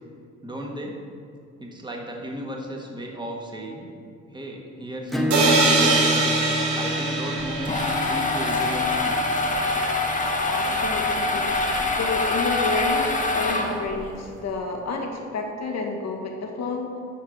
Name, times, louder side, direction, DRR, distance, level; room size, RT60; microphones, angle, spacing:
voice 1, 0.4-1.0 1.6-3.9 4.3-6.2 6.8-9.2, right 1 dB, 15° right, 0 dB, 1.8 m, -34 dB
Acoustic guitar / Strum, 5.1-10.4, equal, ahead, 1.1 m, -29 dB
sound 1, 5.3-9.1, right 3 dB, 75° right, 2.5 m, -23 dB
sound 2, 7.4-14.1, left 2 dB, 25° left, 1.6 m, -24 dB
voice 2, 10.5-17.0, left 3 dB, 60° left, 1 dB, 1.8 m, -30 dB
11.5 x 4.7 x 6.5 m, 2.3 s
cardioid pair, 90°, 30 cm